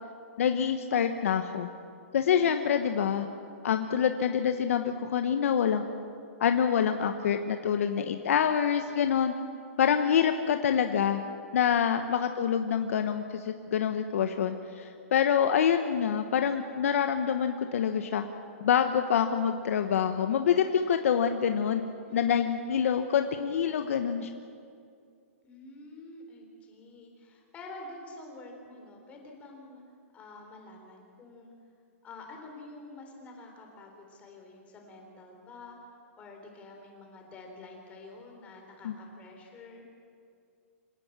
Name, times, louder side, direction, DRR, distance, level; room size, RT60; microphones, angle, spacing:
voice 1, 0.4-1.7 2.1-3.3 3.6-5.8 6.4-9.3 9.8-11.2 11.5-18.2 18.6-21.8 22.1-24.3 38.8-38.9, left 8 dB, 70° left, 7 dB, 1.2 m, -26 dB
voice 2, 22.1-22.4 25.4-29.8 30.1-31.5 32.0-35.8 36.2-39.8, left 2 dB, 15° left, 2 dB, 4.0 m, -48 dB
26.0 x 18.0 x 7.5 m, 2.4 s
hypercardioid pair, 160°, 8 cm